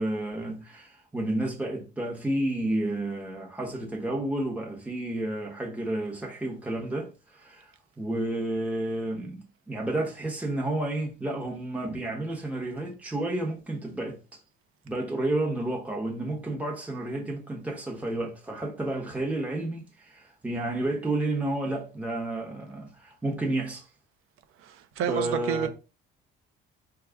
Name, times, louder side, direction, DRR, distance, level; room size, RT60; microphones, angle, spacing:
voice 1, 0.0-14.4 14.8-23.9 25.1-25.7, right 1 dB, 5° right, 1.0 m, -31 dB
voice 2, 25.0-25.7, right 8 dB, 85° right, 0.7 m, -28 dB
4.7 x 2.4 x 3.4 m
cardioid pair, 105°, 21 cm